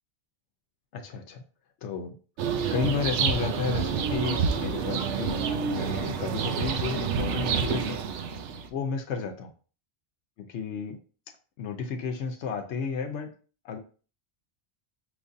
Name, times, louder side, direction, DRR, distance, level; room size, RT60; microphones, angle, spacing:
voice 1, 0.9-1.4 1.8-2.2 2.7-8.0 8.7-9.5 10.5-11.0 11.6-13.3 13.6-13.8, left 5 dB, 85° left, 3 dB, 1.0 m, -32 dB
sound 1, 2.4-8.7, right 6 dB, 90° right, 0.9 m, -28 dB
5.0 x 3.1 x 2.6 m, 0.38 s
omnidirectional pair, 1.1 m